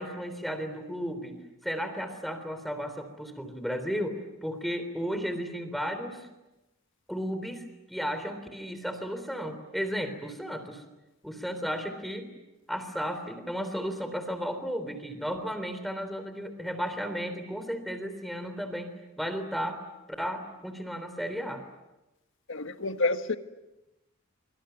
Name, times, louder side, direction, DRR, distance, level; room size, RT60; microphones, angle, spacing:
voice 1, 0.0-1.4 1.6-6.3 7.1-7.6 7.9-10.8 11.2-12.3 12.7-19.8 20.2-21.6, equal, ahead, 3.5 m, -34 dB
voice 2, 22.5-23.4, left 3 dB, 65° left, 1.6 m, -28 dB
25.0 x 24.5 x 9.2 m
head